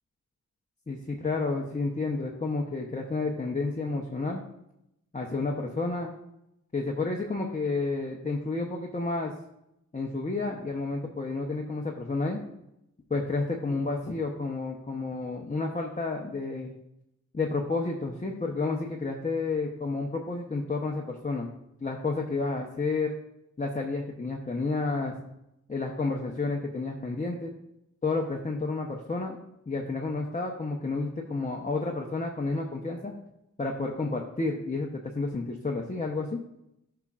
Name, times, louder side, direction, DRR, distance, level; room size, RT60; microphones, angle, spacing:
voice 1, 0.9-4.4 5.1-6.2 6.7-9.3 9.9-12.4 13.1-16.7 17.3-21.5 21.8-23.1 23.6-25.2 25.7-27.5 28.0-29.4 29.7-33.1 33.6-36.4, left 3 dB, 25° left, -1 dB, 0.8 m, -30 dB
14.0 x 5.8 x 2.4 m, 0.84 s
wide cardioid pair, 125°, 30 cm